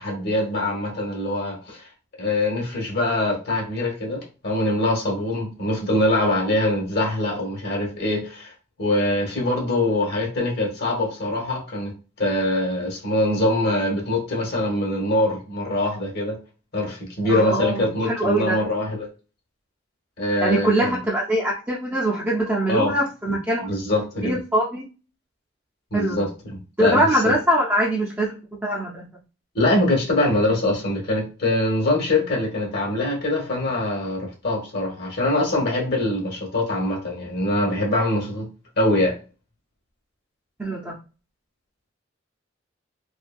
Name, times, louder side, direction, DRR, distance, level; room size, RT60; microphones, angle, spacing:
voice 1, 0.0-1.8 2.2-8.5 8.8-16.4 16.7-19.1 20.2-21.0 22.7-22.9 23.3-24.4 25.9-27.3 29.5-38.5 38.8-39.2, left 1 dB, 55° left, 0 dB, 1.1 m, -23 dB
voice 2, 17.3-18.6 20.4-23.7 24.2-24.8 25.9-26.3 26.8-29.1 40.6-41.0, right 1 dB, 10° right, -4 dB, 0.5 m, -23 dB
2.7 x 2.6 x 2.2 m, 0.32 s
head